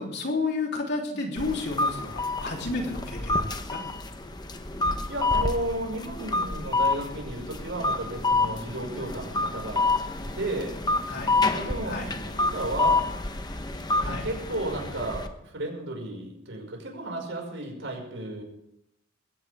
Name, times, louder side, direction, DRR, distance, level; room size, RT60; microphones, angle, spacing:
voice 1, 0.0-3.8 11.1-11.3 11.9-12.1 14.0-14.3, left 3 dB, 55° left, 0 dB, 3.4 m, -31 dB
sound 1, 1.4-15.3, left 3 dB, 20° left, 1.0 m, -28 dB
voice 2, 5.1-9.9 10.2-10.7 11.5-13.1 14.0-18.4, right 1 dB, 70° right, 1 dB, 5.6 m, -33 dB
21.5 x 16.5 x 3.6 m, 0.79 s
head